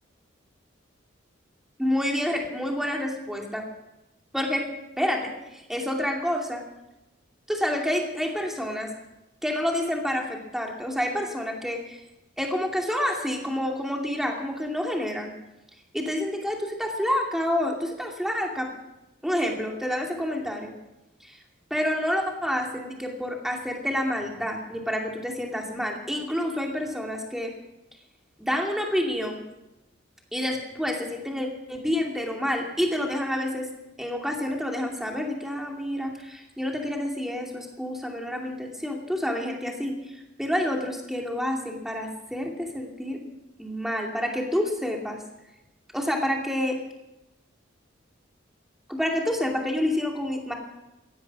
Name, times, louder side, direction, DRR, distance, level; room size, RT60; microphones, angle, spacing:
voice 1, 1.8-3.7 4.3-4.7 5.0-6.6 7.5-8.9 9.4-12.0 12.4-15.3 15.9-18.7 19.2-20.7 21.2-21.4 21.7-27.5 28.4-29.4 30.3-33.7 34.0-43.2 43.6-45.2 45.9-46.8 48.9-50.5, left 1 dB, ahead, 1 dB, 2.5 m, -28 dB
17.0 x 13.5 x 6.1 m, 0.95 s
head